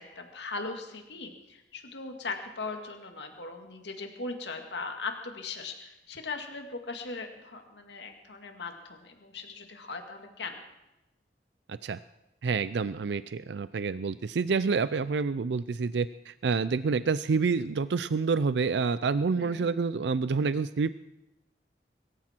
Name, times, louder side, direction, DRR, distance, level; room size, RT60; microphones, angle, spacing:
voice 1, 0.0-10.6 19.4-19.7, left 3 dB, 75° left, 4 dB, 2.1 m, -39 dB
voice 2, 12.4-21.0, right 4 dB, 75° right, 15 dB, 0.4 m, -28 dB
23.5 x 13.5 x 4.5 m, 0.94 s
head